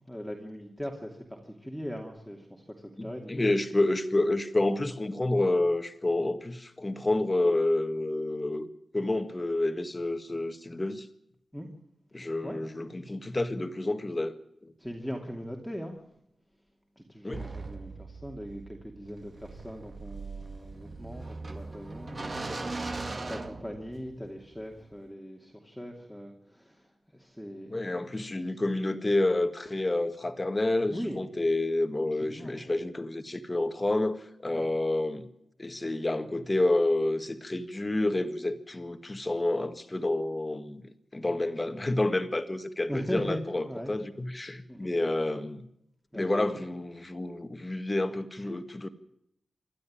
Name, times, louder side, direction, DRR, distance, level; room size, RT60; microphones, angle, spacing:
voice 1, 0.1-3.5 4.6-4.7 11.5-11.7 12.2-12.6 14.8-16.0 17.0-26.9 27.1-27.7 30.9-31.2 32.2-32.6 34.5-34.6 42.9-44.0 44.7-44.9 46.1-46.5, equal, ahead, 2.7 m, -40 dB
voice 2, 3.0-8.7 8.9-11.1 12.1-14.3 14.6-14.7 17.2-17.5 27.7-35.3 35.6-45.6 46.1-48.9, left 2 dB, 20° left, 1.7 m, -29 dB
sound 1, 17.3-24.3, right 3 dB, 35° right, 2.0 m, -39 dB
27.0 x 12.5 x 8.9 m
wide cardioid pair, 120°, 0 cm